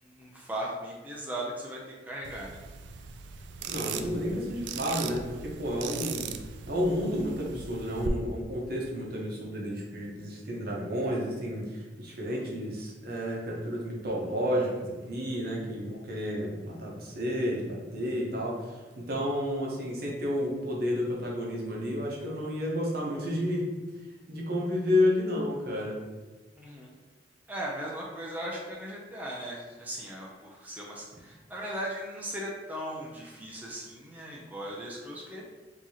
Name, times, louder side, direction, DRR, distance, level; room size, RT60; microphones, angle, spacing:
voice 1, 0.0-2.6 26.6-27.0 27.5-35.4, right 1 dB, 10° right, -3 dB, 0.5 m, -38 dB
sound 1, 2.2-8.1, right 7 dB, 80° right, 0.3 m, -39 dB
voice 2, 3.7-6.3 6.7-23.7 24.3-26.0, left 1 dB, 60° right, -3 dB, 1.0 m, -31 dB
4.7 x 2.9 x 2.8 m, 1.3 s
head